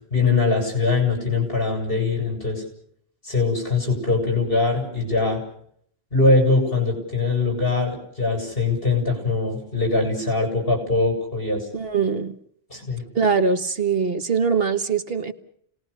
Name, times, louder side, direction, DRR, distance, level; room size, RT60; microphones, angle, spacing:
voice 1, 0.1-2.6 3.2-5.4 6.1-11.7 12.7-13.0, left 3 dB, 60° left, 2 dB, 7.4 m, -22 dB
voice 2, 11.7-12.3 13.1-15.3, right 5 dB, 70° right, 8 dB, 1.5 m, -22 dB
29.5 x 20.0 x 6.8 m, 0.66 s
omnidirectional pair, 1.1 m